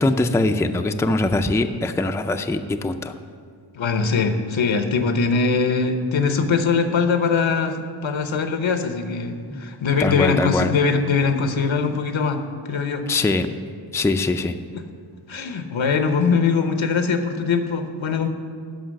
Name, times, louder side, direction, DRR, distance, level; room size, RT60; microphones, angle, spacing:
voice 1, 0.0-3.1 9.5-9.6 10.0-10.7 13.1-13.5 13.9-14.5, left 2 dB, 5° left, 7 dB, 0.4 m, -22 dB
voice 2, 3.7-7.8 8.0-12.4 12.7-13.0 14.7-14.8 15.3-18.3, left 5 dB, 85° left, 7 dB, 0.9 m, -21 dB
11.5 x 5.5 x 6.4 m, 2.1 s
wide cardioid pair, 80°, 45 cm